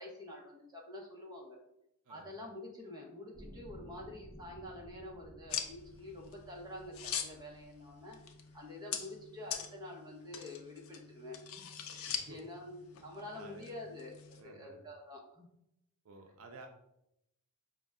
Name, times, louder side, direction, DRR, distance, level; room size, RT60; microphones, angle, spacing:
voice 1, 0.0-1.6 2.1-8.2 8.5-15.5, left 1 dB, 20° right, -1 dB, 0.8 m, -48 dB
sound 1, 3.3-8.6 9.3-9.4, equal, ahead, 1.0 m, -56 dB
sound 2, 5.5-14.4, left 8 dB, 75° left, 0.5 m, -44 dB
voice 2, 12.1-12.4 13.3-13.7 14.4-14.8 16.0-16.7, right 2 dB, 70° right, 4 dB, 0.5 m, -52 dB
5.0 x 2.2 x 3.5 m, 0.82 s
head